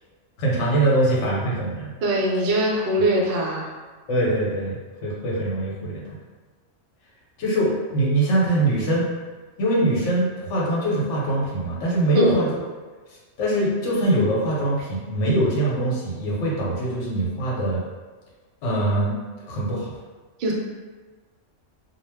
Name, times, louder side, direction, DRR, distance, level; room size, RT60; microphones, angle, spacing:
voice 1, 0.4-1.9 4.1-6.0 7.4-9.1 9.6-12.6 13.4-17.8 18.6-19.1 19.5-19.9, right 1 dB, 75° left, -5 dB, 1.0 m, -23 dB
voice 2, 2.0-3.7 12.1-12.4 20.4-20.5, right 1 dB, 60° right, -3 dB, 0.6 m, -22 dB
2.2 x 2.1 x 3.3 m, 1.4 s
omnidirectional pair, 1.3 m